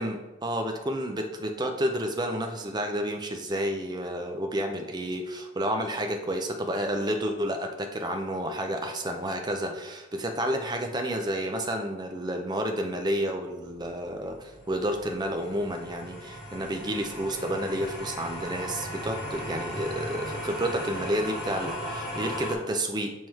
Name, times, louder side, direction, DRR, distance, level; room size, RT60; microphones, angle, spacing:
voice 1, 0.0-23.1, equal, 20° right, 4 dB, 0.6 m, -30 dB
sound 1, 13.7-22.5, equal, 40° left, 2.1 m, -37 dB
7.5 x 3.1 x 4.4 m, 1.1 s
head